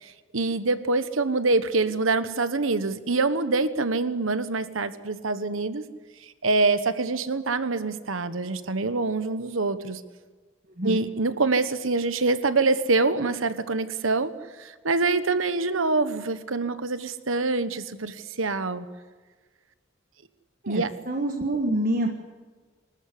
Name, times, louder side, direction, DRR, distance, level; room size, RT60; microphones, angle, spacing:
voice 1, 0.0-5.9 6.4-10.0 10.8-14.3 14.6-18.9 20.7-20.9, right 3 dB, 85° right, 12 dB, 1.2 m, -25 dB
voice 2, 20.6-22.1, right 1 dB, 45° right, 3 dB, 1.4 m, -27 dB
24.5 x 14.0 x 9.8 m, 1.4 s
head